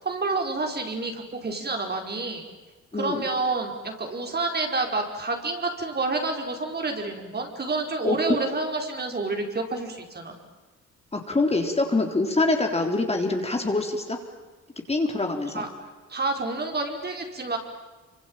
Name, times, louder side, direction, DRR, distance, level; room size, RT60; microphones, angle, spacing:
voice 1, 0.0-2.4 2.9-10.4 15.5-15.7 16.1-17.6, right 3 dB, 35° right, 3 dB, 4.8 m, -29 dB
voice 2, 2.9-3.2 8.0-8.2 11.1-14.2 14.9-15.7, left 2 dB, 20° left, 3 dB, 3.8 m, -25 dB
26.0 x 25.0 x 9.0 m, 1.2 s
cardioid pair, 90°, 30 cm